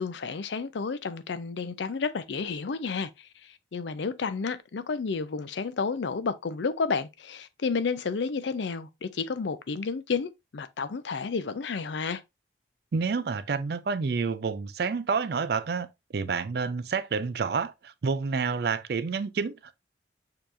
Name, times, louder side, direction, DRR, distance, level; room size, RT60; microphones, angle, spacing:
voice 1, 0.0-12.2, left 5 dB, 70° left, 0.5 m, -31 dB
voice 2, 12.9-15.9 16.1-19.7, right 5 dB, 55° right, 0.4 m, -29 dB
6.6 x 2.9 x 2.5 m
head